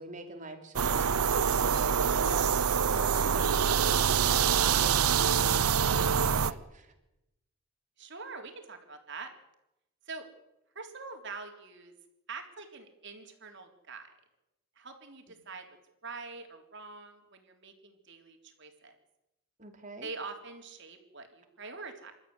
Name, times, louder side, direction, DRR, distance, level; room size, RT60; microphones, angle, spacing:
voice 1, 0.0-6.9 19.6-20.1, right 2 dB, 35° right, 5 dB, 3.4 m, -44 dB
sound 1, 0.8-6.5, right 7 dB, 80° right, 0.7 m, -25 dB
sound 2, 1.5-6.5, left 3 dB, 70° left, 3.5 m, -53 dB
voice 2, 8.0-9.3 10.1-10.3 10.8-11.9 12.3-14.1 14.8-15.7 16.0-19.0 20.0-22.1, right 4 dB, 50° right, 4 dB, 3.7 m, -44 dB
27.5 x 13.5 x 9.7 m, 0.90 s
head